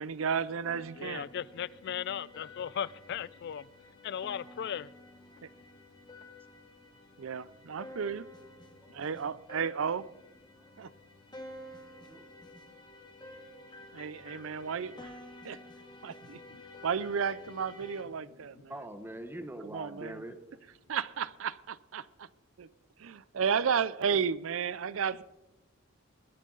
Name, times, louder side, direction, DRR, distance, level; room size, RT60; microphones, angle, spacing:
voice 1, 0.0-1.3 7.2-8.3 8.9-10.0 10.8-10.9 13.9-15.1 15.4-15.6 16.0-16.4 16.8-18.7 19.6-20.2 20.9-22.3 22.6-22.7 23.0-25.2, right 6 dB, 80° right, 19 dB, 0.5 m, -33 dB
sound 1, 0.7-18.0, left 1 dB, 20° left, 1.9 m, -51 dB
voice 2, 1.0-3.6 4.0-4.9, left 8 dB, 55° left, 21 dB, 0.3 m, -37 dB
voice 3, 7.2-7.5 8.8-9.1 11.7-11.8 12.1-12.6 18.7-20.4, right 1 dB, 10° right, 9 dB, 1.1 m, -44 dB
21.0 x 10.0 x 3.9 m, 1.0 s
head